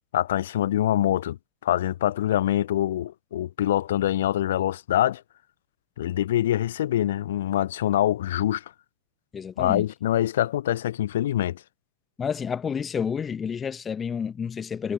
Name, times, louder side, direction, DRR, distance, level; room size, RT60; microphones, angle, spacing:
voice 1, 0.1-1.4 1.6-5.2 6.0-8.6 9.6-11.6, left 12 dB, 60° left, 1.4 m, -24 dB
voice 2, 9.3-9.8 12.2-14.9, left 7 dB, 20° left, 2.2 m, -30 dB
figure-of-eight pair, 90°, 0 cm